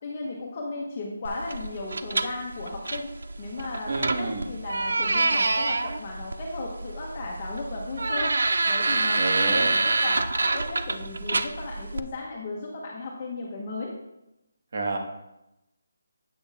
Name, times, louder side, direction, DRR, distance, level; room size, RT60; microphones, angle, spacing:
voice 1, 0.0-3.1 3.4-8.4 8.7-13.9, left 3 dB, 30° left, -3 dB, 1.3 m, -35 dB
sound 1, 1.3-12.0, right 3 dB, 75° right, 0.6 m, -27 dB
voice 2, 3.9-4.5 9.2-9.7 14.7-15.0, right 3 dB, 50° right, 2 dB, 1.6 m, -29 dB
8.7 x 7.9 x 3.6 m, 0.91 s
hypercardioid pair, 170°, 0 cm